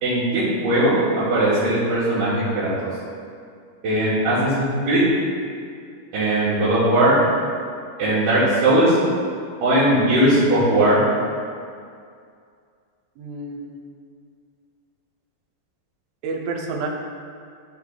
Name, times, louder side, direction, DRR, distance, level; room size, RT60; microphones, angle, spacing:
voice 1, 0.0-2.7 3.8-5.0 6.1-7.2 8.0-9.0 9.6-11.0, right 1 dB, 65° right, -13 dB, 2.4 m, -19 dB
voice 2, 13.2-13.8 16.2-16.9, right 3 dB, 80° right, 0 dB, 2.1 m, -29 dB
12.0 x 4.1 x 2.3 m, 2.3 s
omnidirectional pair, 4.7 m